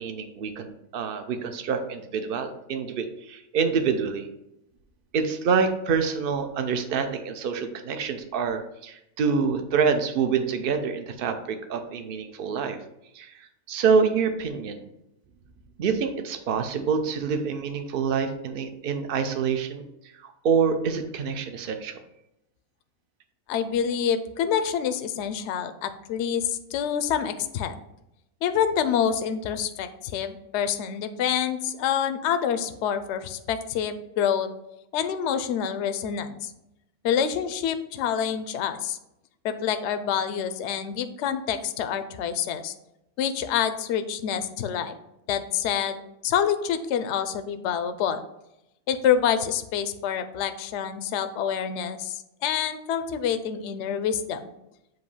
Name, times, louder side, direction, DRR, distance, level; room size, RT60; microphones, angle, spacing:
voice 1, 0.0-4.3 5.1-12.8 13.1-14.8 15.8-19.8 20.2-22.0, right 6 dB, 50° right, 7 dB, 0.7 m, -26 dB
voice 2, 23.5-27.7 28.4-34.5 34.9-36.5 37.0-39.0 39.4-42.7 43.2-44.9 45.3-48.2 48.9-54.5, left 8 dB, 65° left, 10 dB, 0.8 m, -27 dB
7.7 x 2.7 x 5.4 m, 0.85 s
omnidirectional pair, 1.5 m